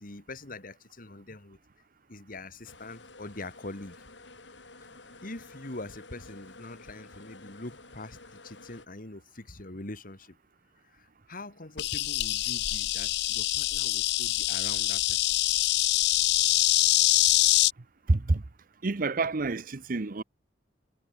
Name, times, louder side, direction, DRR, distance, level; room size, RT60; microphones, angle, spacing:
voice 1, 0.0-1.6 2.1-4.0 5.2-8.2 8.4-10.4 10.8-15.3, left 2 dB, 50° left, 2.5 m, -43 dB
sound 1, 2.6-8.9, left 3 dB, 85° left, 6.0 m, -51 dB
Insect, 11.8-17.7, left 16 dB, 65° left, 0.5 m, -25 dB
voice 2, 18.1-18.4 18.8-20.2, right 3 dB, 50° right, 0.8 m, -27 dB
head